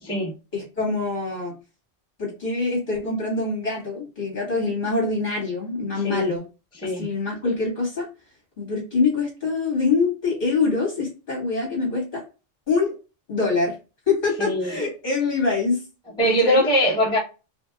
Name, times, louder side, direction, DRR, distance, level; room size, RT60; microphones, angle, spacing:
voice 1, 0.0-0.3 6.0-6.2 6.8-7.1 14.4-14.8 16.2-17.2, equal, 5° left, 1.0 m, -21 dB
voice 2, 0.5-1.6 2.2-6.4 6.8-8.1 8.6-12.2 12.7-12.9 13.3-13.7 14.1-15.8 16.2-16.7, left 4 dB, 45° left, 2.1 m, -24 dB
4.9 x 2.1 x 2.3 m
omnidirectional pair, 1.2 m